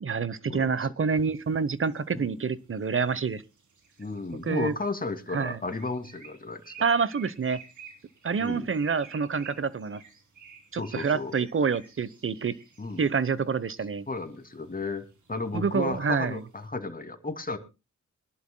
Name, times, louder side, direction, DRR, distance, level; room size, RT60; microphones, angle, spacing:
voice 1, 0.0-3.4 4.5-4.7 5.3-5.6 6.8-7.6 8.2-10.0 10.7-12.5 13.0-14.1 15.5-16.4, right 5 dB, 45° right, 18 dB, 0.9 m, -27 dB
sound 1, 1.2-16.7, right 6 dB, 75° right, 3.6 m, -53 dB
voice 2, 4.0-6.9 8.4-8.7 10.8-11.4 12.8-13.0 14.1-17.6, left 3 dB, 30° left, 7 dB, 2.4 m, -34 dB
24.5 x 11.5 x 2.2 m, 0.28 s
cardioid pair, 70°, 30 cm